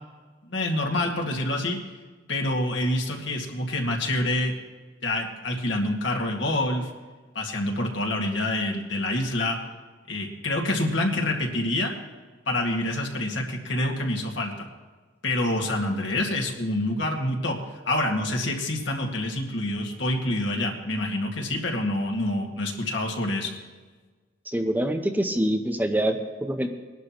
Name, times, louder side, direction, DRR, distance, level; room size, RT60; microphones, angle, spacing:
voice 1, 0.4-1.8 2.3-4.5 5.0-6.9 7.3-9.6 10.1-11.9 12.5-14.7 15.2-23.5, left 1 dB, 70° left, 1 dB, 2.0 m, -27 dB
voice 2, 24.5-26.7, right 1 dB, 10° right, 5 dB, 0.7 m, -25 dB
21.0 x 11.5 x 3.0 m, 1.4 s
head